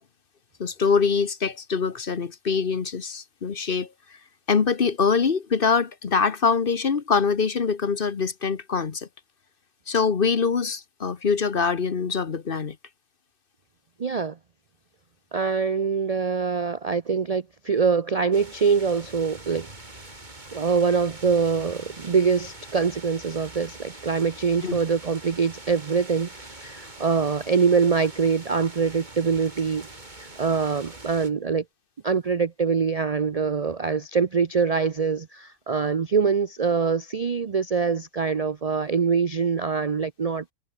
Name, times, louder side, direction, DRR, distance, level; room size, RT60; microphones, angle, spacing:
voice 1, 0.6-4.2 4.5-9.1 9.9-12.8 24.6-24.8, left 5 dB, 40° left, 1.1 m, -24 dB
voice 2, 14.0-14.4 15.3-19.7 20.5-29.9 30.2-31.6 32.0-40.4, right 5 dB, 65° right, 0.3 m, -24 dB
sound 1, 18.3-31.3, right 2 dB, 30° right, 3.5 m, -44 dB
omnidirectional pair, 1.6 m